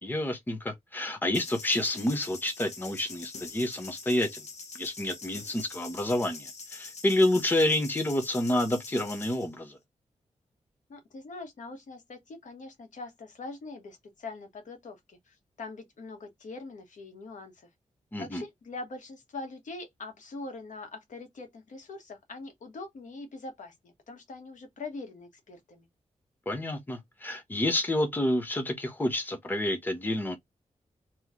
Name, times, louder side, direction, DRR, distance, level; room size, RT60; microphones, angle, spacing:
voice 1, 0.0-4.4 4.7-9.8 18.1-18.4 26.5-30.4, left 1 dB, 15° left, 0.8 m, -29 dB
sound 1, 1.3-9.5, left 4 dB, 65° left, 0.9 m, -44 dB
voice 2, 10.9-17.7 18.2-25.9, left 3 dB, 90° left, 1.2 m, -43 dB
3.0 x 3.0 x 3.6 m
wide cardioid pair, 170°, 13 cm